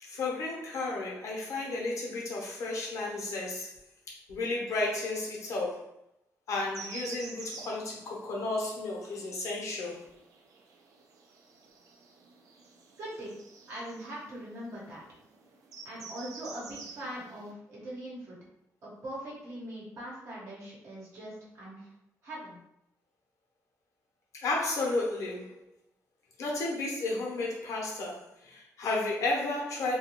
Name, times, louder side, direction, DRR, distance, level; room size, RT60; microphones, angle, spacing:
voice 1, 0.0-3.7 4.1-5.9 6.5-10.0 24.4-25.6 26.4-30.0, left 2 dB, 60° left, -2 dB, 0.8 m, -33 dB
sound 1, 6.5-17.5, right 5 dB, 80° right, 0.4 m, -49 dB
voice 2, 13.0-13.3 13.7-15.0 15.8-18.4 18.8-21.9 22.2-22.6, right 1 dB, 50° right, -6 dB, 0.9 m, -41 dB
2.4 x 2.2 x 2.9 m, 0.78 s
wide cardioid pair, 155°, 6 cm